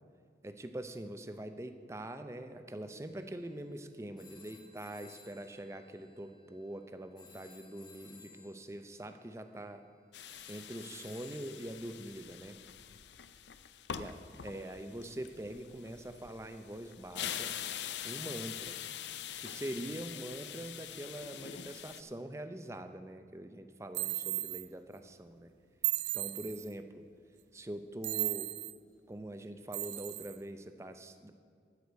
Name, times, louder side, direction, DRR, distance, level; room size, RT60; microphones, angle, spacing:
voice 1, 0.4-9.8 10.5-12.6 13.9-14.1 14.4-17.5 18.0-18.8 19.4-25.5 26.1-27.0 27.5-28.5 29.1-31.3, right 1 dB, 15° right, 8 dB, 0.5 m, -44 dB
sound 1, 2.9-12.5, left 5 dB, 25° left, 1.0 m, -60 dB
sound 2, 10.1-22.0, left 9 dB, 80° left, 0.5 m, -44 dB
sound 3, 23.9-24.7 25.8-26.7 28.0-28.7 29.7-30.4, right 16 dB, 75° right, 0.4 m, -35 dB
13.0 x 5.0 x 7.9 m, 2.2 s
head